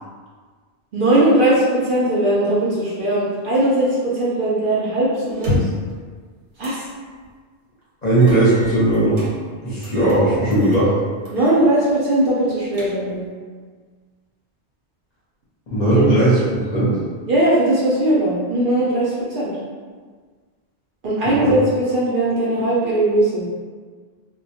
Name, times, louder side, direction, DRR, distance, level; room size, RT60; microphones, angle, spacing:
voice 1, 0.9-5.7 6.6-6.9 11.3-13.3 16.0-16.1 17.3-19.6 21.0-23.4, right 1 dB, 60° right, -8 dB, 0.6 m, -19 dB
sound 1, 5.3-5.9 6.6-6.8 7.2-7.3 8.2-9.3 9.8-10.2 10.5-10.8 11.3-11.6 11.9-12.0 12.5-13.3, left 2 dB, 85° right, 1.0 m, -28 dB
voice 2, 8.0-9.3 9.6-10.9 15.7-16.4 16.7-17.0 21.4-21.5, right 2 dB, 45° left, -9 dB, 0.7 m, -17 dB
2.1 x 2.1 x 2.7 m, 1.5 s
omnidirectional pair, 1.2 m